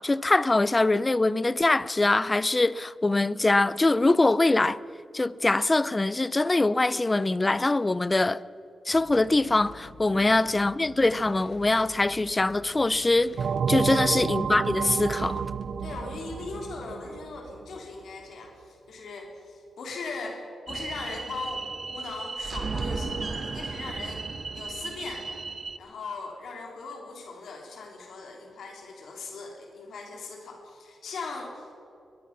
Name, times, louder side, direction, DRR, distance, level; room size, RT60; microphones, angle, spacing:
voice 1, 0.0-4.8 5.1-8.4 8.9-13.3 13.7-15.4, left 2 dB, 20° left, 0.5 m, -23 dB
sound 1, 8.9-16.6, left 4 dB, 60° left, 2.3 m, -49 dB
sound 2, 13.4-17.8, right 6 dB, 65° right, 0.5 m, -30 dB
voice 2, 15.8-25.4 25.8-31.8, left 3 dB, 85° left, 3.4 m, -39 dB
sound 3, 20.7-25.8, right 4 dB, 40° right, 1.1 m, -34 dB
22.0 x 21.5 x 5.9 m
wide cardioid pair, 140°, 0 cm